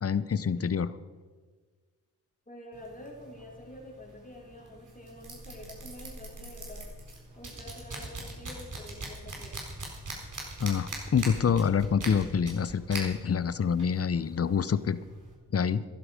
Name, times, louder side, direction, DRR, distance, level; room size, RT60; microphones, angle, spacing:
voice 1, 0.0-0.9 10.6-15.0 15.5-15.8, left 7 dB, 40° left, 15 dB, 0.8 m, -26 dB
voice 2, 2.5-6.8 7.3-9.6, left 1 dB, 20° left, -3 dB, 4.2 m, -47 dB
sound 1, 2.7-15.3, right 2 dB, 50° right, 4.4 m, -43 dB
14.0 x 12.0 x 5.1 m, 1.4 s
supercardioid pair, 45°, 38 cm